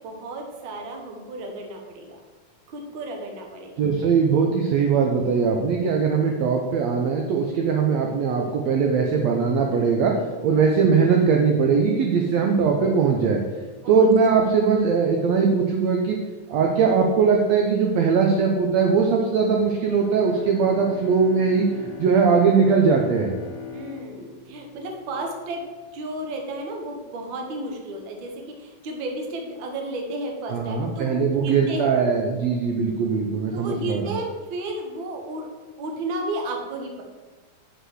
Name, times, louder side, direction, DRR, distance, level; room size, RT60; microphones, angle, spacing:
voice 1, 0.0-2.2 2.7-3.8 13.8-14.1 23.7-25.6 25.9-32.0 33.5-35.5 35.8-37.0, right 1 dB, 60° right, 1 dB, 1.3 m, -33 dB
voice 2, 3.8-13.4 13.9-16.2 16.5-21.7 22.0-23.3 30.5-34.1, right 5 dB, 75° right, 1 dB, 1.6 m, -20 dB
Bowed string instrument, 20.0-25.6, left 6 dB, 70° left, 1.4 m, -40 dB
5.8 x 5.5 x 6.3 m, 1.3 s
omnidirectional pair, 3.7 m